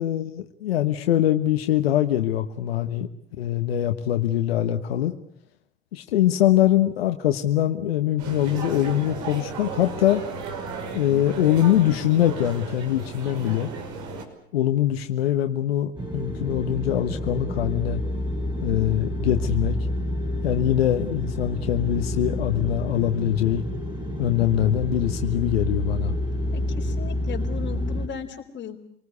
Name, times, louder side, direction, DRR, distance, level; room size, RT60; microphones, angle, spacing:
voice 1, 0.0-3.1 3.4-5.1 5.9-10.2 10.9-13.7 14.5-18.0 18.6-19.8 20.4-23.6 24.2-26.1, left 12 dB, 85° left, 6 dB, 1.4 m, -23 dB
sound 1, 8.2-14.2, right 4 dB, 65° right, 5.5 m, -34 dB
sound 2, 16.0-28.1, left 1 dB, 15° right, 4.9 m, -29 dB
voice 2, 26.5-28.8, left 8 dB, 40° left, 3 dB, 4.3 m, -36 dB
28.0 x 19.5 x 8.3 m, 0.72 s
hypercardioid pair, 85°, 29 cm